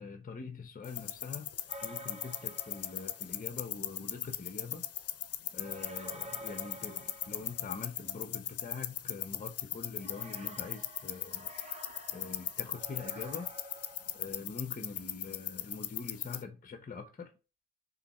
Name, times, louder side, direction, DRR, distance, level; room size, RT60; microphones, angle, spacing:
voice 1, 0.0-1.5 1.8-4.9 5.5-11.5 12.1-13.5 14.1-17.3, left 5 dB, 30° left, 1.0 m, -44 dB
sound 1, 0.8-16.4, left 10 dB, 55° left, 0.7 m, -39 dB
sound 2, 1.7-3.4 5.5-8.1 10.0-14.4, right 1 dB, 20° right, 1.4 m, -49 dB
6.7 x 3.2 x 4.3 m
cardioid pair, 90°, 30 cm